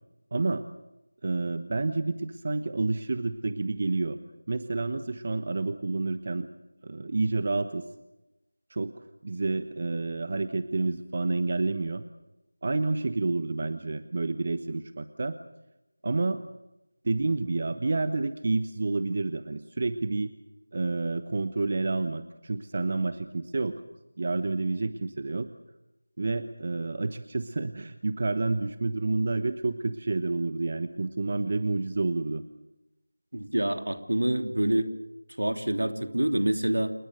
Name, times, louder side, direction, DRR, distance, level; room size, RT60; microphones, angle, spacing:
voice 1, 0.3-0.6 1.2-4.2 4.5-6.5 6.8-7.8 8.7-8.9 9.2-12.0 12.6-15.4 16.0-16.4 17.0-20.3 20.7-23.8 24.2-25.5 26.2-32.4, right 3 dB, 35° right, 11 dB, 1.2 m, -29 dB
voice 2, 33.3-34.9 35.4-36.9, right 1 dB, 75° right, 7 dB, 3.0 m, -26 dB
28.5 x 20.5 x 6.7 m, 0.94 s
figure-of-eight pair, 170°, 0 cm